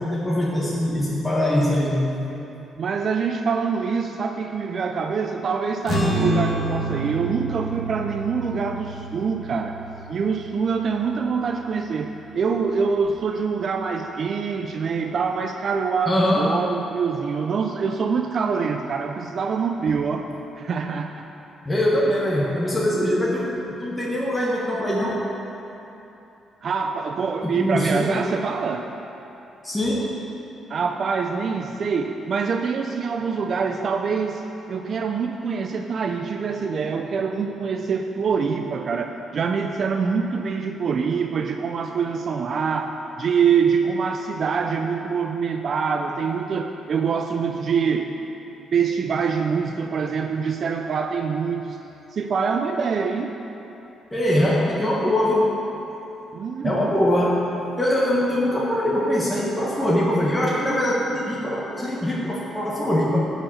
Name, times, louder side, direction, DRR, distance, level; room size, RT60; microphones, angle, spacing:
voice 1, 0.0-2.1 16.0-16.5 21.6-25.2 27.4-28.2 29.6-30.1 54.1-55.5 56.6-57.4 57.8-63.2, left 1 dB, 15° left, -5 dB, 1.4 m, -22 dB
voice 2, 2.8-9.8 10.1-21.3 26.6-28.9 30.7-34.4 34.7-48.1 48.7-51.8 52.1-53.4 56.3-57.0, right 5 dB, 50° right, 5 dB, 0.5 m, -25 dB
sound 1, 5.8-12.5, right 1 dB, 40° left, 1.7 m, -29 dB
10.5 x 5.0 x 7.6 m, 3.0 s
cardioid pair, 90°, 0 cm